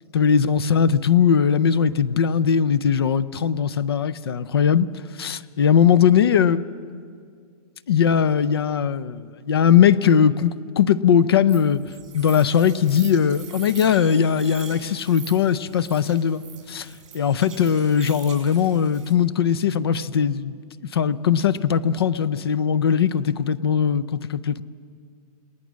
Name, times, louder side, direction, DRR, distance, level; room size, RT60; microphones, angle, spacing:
voice 1, 0.1-4.9 5.2-6.6 7.9-11.8 12.1-16.9 17.1-20.6 20.9-24.6, left 8 dB, 40° left, 0.5 m, -19 dB
sound 1, 11.5-19.1, right 6 dB, 50° right, 5.2 m, -43 dB
28.5 x 19.0 x 6.3 m
hypercardioid pair, 180°, 20 cm